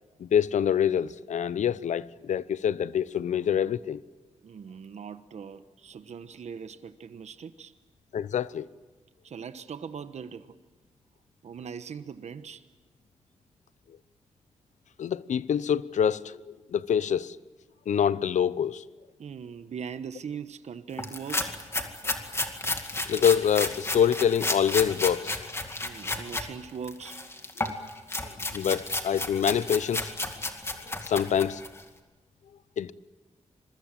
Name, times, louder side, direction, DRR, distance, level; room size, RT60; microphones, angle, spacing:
voice 1, 0.2-4.0 8.1-8.7 15.0-17.4 17.9-18.8 23.1-25.5 27.6-27.7 28.2-30.1 31.0-31.6 32.8-32.9, left 8 dB, 85° left, 0.7 m, -26 dB
voice 2, 4.4-7.7 9.2-10.5 11.4-12.6 19.2-21.6 25.8-27.2, right 7 dB, 70° right, 1.1 m, -40 dB
sound 1, 21.0-26.5 26.8-31.8, left 2 dB, 20° left, 2.2 m, -32 dB
26.5 x 22.5 x 7.6 m
wide cardioid pair, 125°, 12 cm